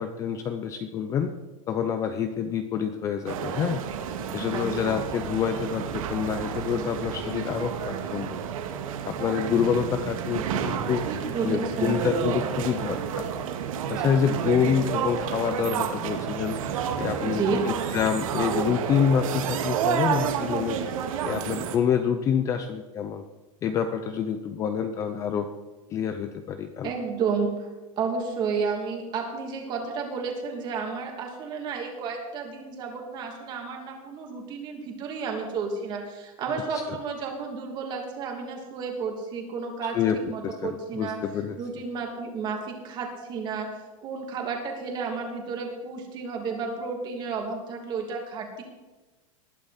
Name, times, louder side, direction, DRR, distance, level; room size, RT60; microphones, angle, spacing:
voice 1, 0.0-1.3 1.7-3.8 4.3-8.4 9.0-11.0 11.4-13.3 13.9-16.6 17.0-20.8 21.2-23.2 23.6-25.5 25.9-26.9 36.7-37.0 39.8-40.2 40.4-41.5, left 7 dB, 20° left, 8 dB, 0.6 m, -27 dB
sound 1, 3.3-21.8, right 8 dB, 75° right, 2.1 m, -30 dB
voice 2, 11.1-12.0 17.2-17.6 26.8-27.7 28.0-41.2 41.6-43.7 44.0-48.6, right 5 dB, 25° right, 2 dB, 2.8 m, -32 dB
20.0 x 11.5 x 4.3 m, 1.2 s
supercardioid pair, 175°, 18 cm